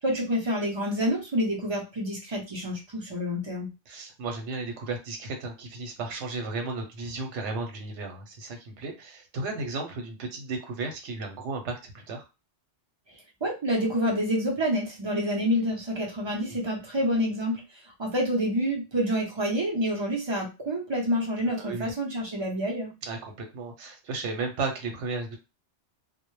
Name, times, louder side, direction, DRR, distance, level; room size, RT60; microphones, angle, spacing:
voice 1, 0.0-3.7 13.4-17.6 18.0-22.9, equal, 40° right, -1 dB, 0.4 m, -28 dB
voice 2, 3.9-12.2 16.5-16.6 21.6-21.9 23.0-25.4, right 3 dB, 85° right, 4 dB, 0.9 m, -34 dB
2.1 x 2.0 x 3.0 m, 0.28 s
omnidirectional pair, 1.2 m